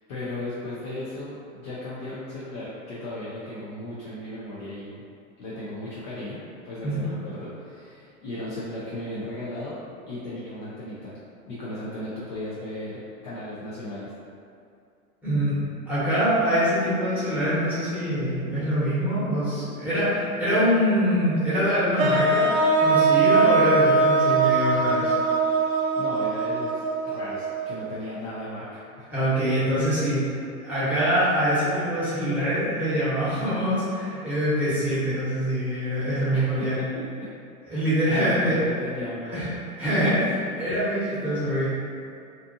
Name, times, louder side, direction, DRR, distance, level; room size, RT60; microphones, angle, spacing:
voice 1, 0.1-5.0 5.4-9.8 10.1-11.1 11.5-14.1 26.0-29.1 36.3-37.3 37.7-39.6, left 1 dB, 35° left, -8 dB, 0.4 m, -36 dB
voice 2, 15.2-15.6 15.9-22.5 22.8-25.1 29.1-30.2 30.6-36.8 37.7-38.6 39.3-39.5 39.8-41.7, equal, 5° right, -14 dB, 0.9 m, -24 dB
sound 1, 22.0-28.0, right 3 dB, 75° right, 0.6 m, -22 dB
2.5 x 2.4 x 2.6 m, 2.5 s
hypercardioid pair, 130°, 43 cm